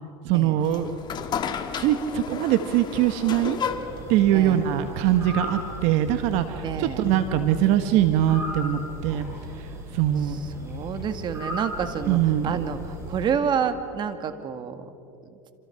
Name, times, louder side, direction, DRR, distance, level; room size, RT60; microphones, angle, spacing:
voice 1, 0.2-0.9 1.7-3.6 4.1-9.2 9.6-10.4 12.1-12.5, right 11 dB, 60° right, 8 dB, 1.4 m, -22 dB
sound 1, 0.6-5.9, left 7 dB, 35° left, 1.9 m, -33 dB
sound 2, 3.7-13.3, equal, 20° right, 6.9 m, -37 dB
voice 2, 4.3-4.7 6.6-7.1 10.2-14.9, right 7 dB, 40° right, 8 dB, 2.0 m, -29 dB
27.5 x 27.5 x 5.9 m, 2.7 s
supercardioid pair, 110°, 12 cm